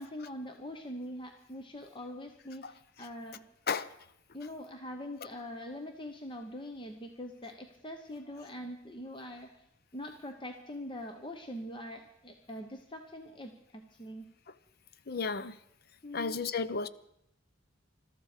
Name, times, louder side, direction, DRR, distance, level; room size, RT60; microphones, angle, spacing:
voice 1, 0.0-3.5 4.3-9.6 9.9-14.3 16.0-16.4, left 1 dB, 25° left, 1.0 m, -43 dB
voice 2, 15.1-15.6 16.1-16.9, left 5 dB, 50° left, 0.7 m, -32 dB
21.5 x 13.0 x 5.0 m
head